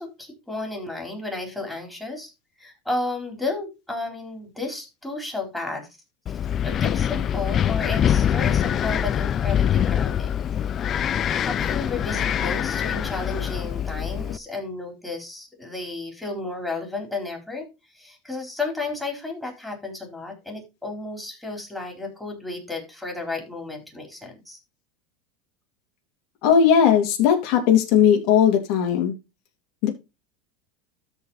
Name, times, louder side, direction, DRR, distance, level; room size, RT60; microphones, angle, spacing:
voice 1, 0.0-2.3 2.6-5.9 6.6-10.4 11.4-17.7 17.9-24.6, left 3 dB, 5° left, 1 dB, 4.0 m, -33 dB
Wind, 6.3-14.4, left 9 dB, 30° left, 0.4 m, -24 dB
voice 2, 26.4-29.1 29.8-29.9, left 8 dB, 55° left, 2 dB, 3.0 m, -18 dB
13.0 x 4.7 x 4.2 m, 0.26 s
supercardioid pair, 140°, 0 cm